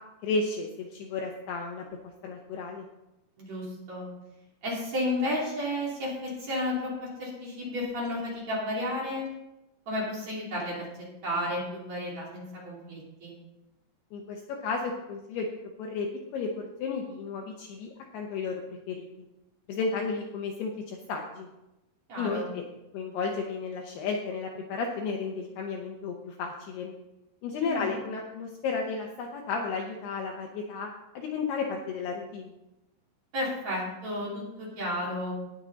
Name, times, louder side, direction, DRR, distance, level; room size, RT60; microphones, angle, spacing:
voice 1, 0.2-1.8 2.2-2.9 14.1-15.5 15.8-16.1 16.3-16.5 16.8-18.6 18.9-19.1 19.7-21.5 22.2-22.6 22.9-26.9 27.4-32.5, left 4 dB, 75° left, 2 dB, 2.5 m, -33 dB
voice 2, 3.4-4.0 4.6-9.3 9.9-10.9 11.2-13.3 22.1-22.5 27.6-28.0 33.3-35.3, left 1 dB, 40° right, -5 dB, 3.5 m, -32 dB
18.5 x 6.3 x 4.0 m, 0.95 s
omnidirectional pair, 5.4 m